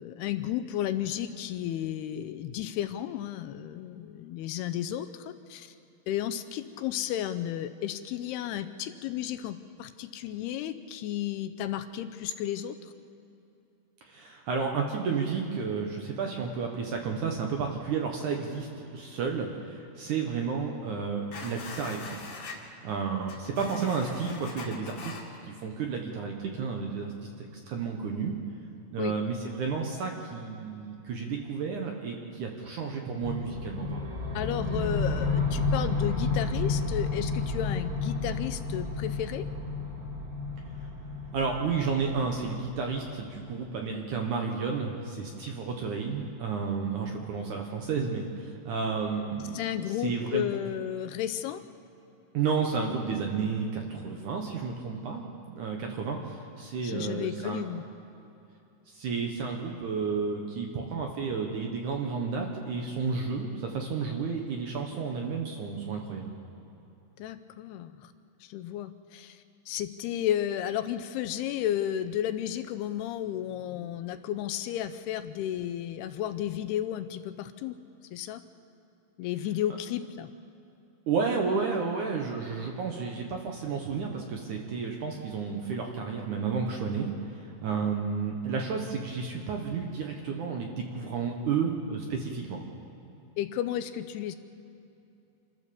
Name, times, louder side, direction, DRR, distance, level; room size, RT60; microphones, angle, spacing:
voice 1, 0.0-5.7 6.1-12.9 29.0-29.2 34.4-39.5 49.5-51.6 56.8-57.8 67.2-68.1 68.4-77.8 78.1-78.4 79.2-80.3 93.4-94.4, left 11 dB, 80° left, 10 dB, 2.5 m, -33 dB
voice 2, 14.1-22.2 22.8-28.3 28.9-34.1 41.3-50.5 52.3-57.7 58.9-66.3 81.1-92.6, right 5 dB, 65° right, 2 dB, 2.1 m, -32 dB
sound 1, 21.3-22.6 23.2-25.2, left 4 dB, 45° left, 2.3 m, -43 dB
sound 2, 33.2-43.3, left 3 dB, 35° right, 4.2 m, -31 dB
27.0 x 13.5 x 7.1 m, 2.8 s
omnidirectional pair, 4.9 m